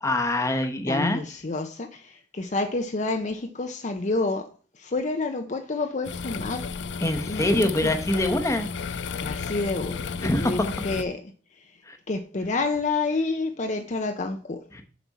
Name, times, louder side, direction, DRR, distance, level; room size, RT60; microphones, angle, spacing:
voice 1, 0.0-1.2 7.0-8.7 10.2-10.7 11.8-12.0 14.7-14.8, left 1 dB, 15° left, 0.9 m, -24 dB
voice 2, 0.9-4.5 4.8-6.7 7.3-7.9 9.2-11.2 12.1-14.6, left 3 dB, 40° left, 0.6 m, -29 dB
sound 1, 6.0-11.0, left 5 dB, 90° left, 0.5 m, -33 dB
7.2 x 5.9 x 4.1 m
head